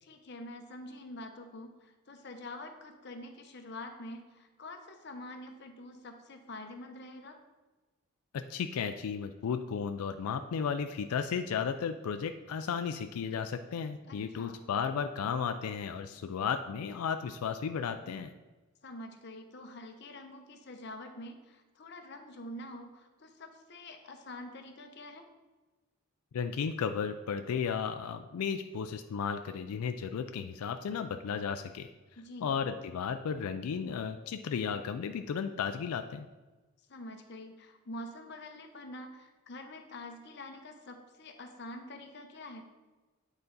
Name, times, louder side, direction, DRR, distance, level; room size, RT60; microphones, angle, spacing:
voice 1, 0.0-7.4 14.1-14.6 18.8-25.3 32.2-32.5 36.9-42.6, left 1 dB, 50° left, 5 dB, 0.8 m, -46 dB
voice 2, 8.3-18.3 26.3-31.9 32.4-36.3, left 6 dB, 90° left, 8 dB, 0.4 m, -34 dB
8.9 x 4.0 x 4.0 m, 1.2 s
head